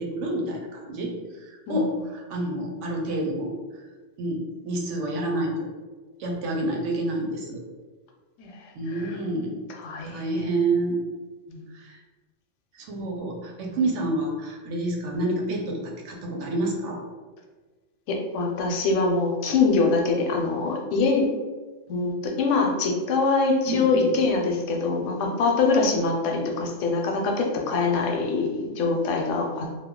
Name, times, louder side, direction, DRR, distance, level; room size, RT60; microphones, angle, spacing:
voice 1, 0.0-3.8 4.2-5.7 6.2-7.6 8.7-9.5 10.0-11.0 11.7-12.0 12.7-17.0 23.7-24.1, right 2 dB, 90° right, 0 dB, 1.0 m, -28 dB
voice 2, 8.4-9.2 9.7-10.5 11.5-11.6 18.1-21.3 21.9-29.7, left 3 dB, 85° left, 2 dB, 0.9 m, -24 dB
2.3 x 2.2 x 3.5 m, 1.3 s
omnidirectional pair, 1.2 m